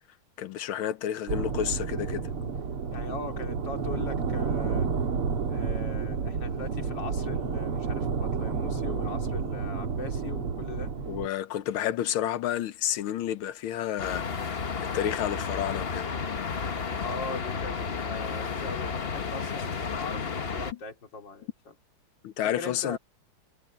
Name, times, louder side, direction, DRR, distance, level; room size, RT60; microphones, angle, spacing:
voice 1, 0.4-2.3 11.1-14.7 14.9-16.1 22.2-23.0, left 11 dB, 75° left, 1.6 m, -30 dB
sound 1, 1.3-11.3, right 5 dB, 90° right, 2.9 m, -30 dB
voice 2, 2.9-4.9 5.5-10.9 17.0-21.7 22.4-23.0, left 3 dB, 55° left, 3.5 m, -40 dB
sound 2, 14.0-20.7, left 5 dB, 35° left, 1.0 m, -32 dB
omnidirectional pair, 2.4 m